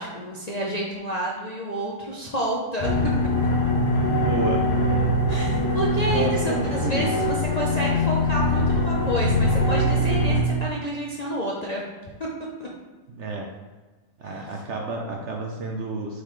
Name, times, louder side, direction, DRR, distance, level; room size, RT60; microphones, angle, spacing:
voice 1, 0.0-2.9 5.3-11.8 12.6-12.7 14.2-14.4, right 1 dB, 40° left, -4 dB, 0.6 m, -29 dB
sound 1, 2.8-10.4, left 1 dB, 85° left, 1.7 m, -22 dB
voice 2, 4.1-4.6 6.1-7.1 13.1-13.5 14.2-16.2, right 2 dB, 55° right, 1 dB, 0.9 m, -30 dB
8.3 x 3.9 x 3.2 m, 1.3 s
omnidirectional pair, 1.7 m